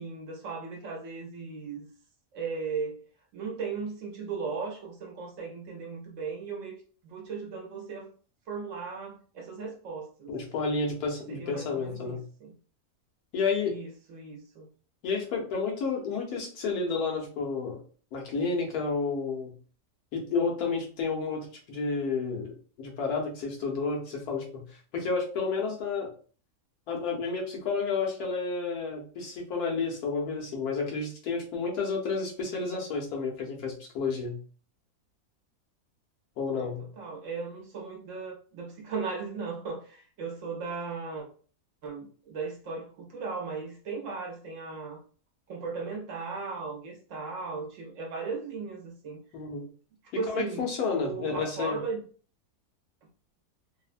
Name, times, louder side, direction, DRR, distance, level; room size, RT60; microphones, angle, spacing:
voice 1, 0.0-1.9 2.3-3.0 3.3-8.1 8.5-10.4 11.3-12.5 13.7-14.7 32.5-32.6 36.5-41.3 41.8-45.0 45.5-49.2 50.0-52.0, right 4 dB, 65° right, 1 dB, 0.9 m, -37 dB
voice 2, 10.3-12.2 13.3-13.8 15.0-17.8 18.1-19.5 20.1-24.7 24.9-26.1 26.9-34.4 36.4-36.9 49.3-49.7 50.3-51.8, left 4 dB, 85° left, 0 dB, 1.3 m, -31 dB
3.0 x 2.1 x 2.4 m, 0.41 s
omnidirectional pair, 1.6 m